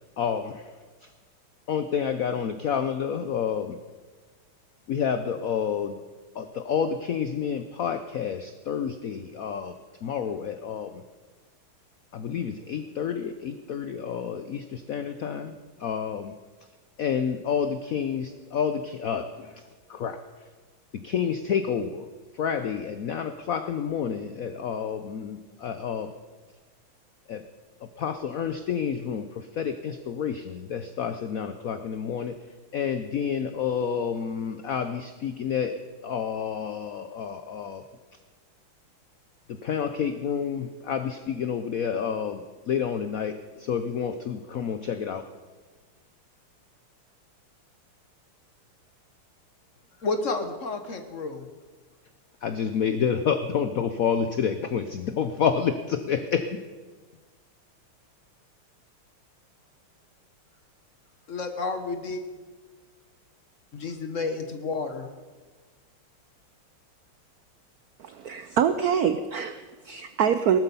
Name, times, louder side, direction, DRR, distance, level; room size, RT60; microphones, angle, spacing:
voice 1, 0.2-0.7 1.7-3.8 4.9-6.0 6.4-9.7 10.0-11.0 12.1-15.5 15.8-16.3 17.0-19.5 19.9-20.2 20.9-22.1 22.3-26.1 27.3-27.4 27.8-32.4 32.7-37.8 39.5-45.3 52.4-56.6, left 7 dB, 85° left, 10 dB, 0.7 m, -29 dB
voice 2, 50.0-51.5 61.3-62.2 63.7-65.1, left 3 dB, 45° left, 7 dB, 1.2 m, -31 dB
voice 3, 68.0-70.6, right 8 dB, 85° right, 10 dB, 0.8 m, -25 dB
18.5 x 12.5 x 5.5 m, 1.4 s
omnidirectional pair, 2.4 m